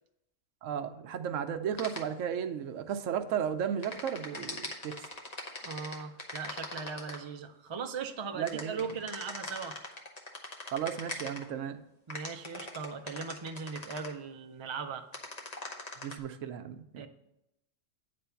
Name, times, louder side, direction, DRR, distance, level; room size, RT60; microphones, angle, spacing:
voice 1, 0.6-4.9 8.3-8.8 10.7-11.8 16.0-17.1, right 8 dB, 80° right, 8 dB, 1.0 m, -34 dB
sound 1, 1.8-2.0 3.8-7.2 8.5-11.4 12.1-14.1 15.1-16.1, left 2 dB, 35° left, 1.1 m, -40 dB
voice 2, 5.6-9.8 12.1-15.1 17.0-17.1, right 5 dB, 40° right, 5 dB, 0.4 m, -39 dB
9.5 x 3.4 x 6.9 m, 0.84 s
omnidirectional pair, 1.3 m